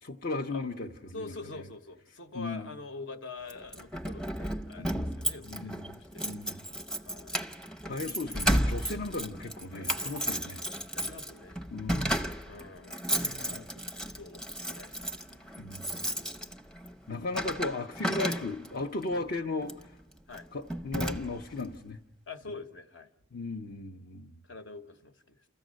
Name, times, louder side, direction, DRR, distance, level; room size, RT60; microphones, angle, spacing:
voice 1, 0.0-1.2 2.3-2.7 4.8-5.2 5.5-6.0 6.3-6.6 7.9-10.6 11.7-12.3 13.2-13.6 15.6-16.2 17.1-20.0 20.5-22.0 23.3-24.3, left 3 dB, 50° left, 2 dB, 0.7 m, -36 dB
voice 2, 1.1-6.4 7.0-7.5 10.4-10.5 10.9-11.6 12.0-13.8 14.1-15.6 19.1-19.3 20.3-20.5 21.3-21.4 22.3-23.1 24.4-25.5, left 3 dB, 65° left, 7 dB, 1.2 m, -46 dB
Keys jangling, 3.5-18.8 19.6-19.9 20.3-20.4 20.7-21.6, equal, 5° left, 0.7 m, -34 dB
28.5 x 14.5 x 6.3 m, 1.0 s
head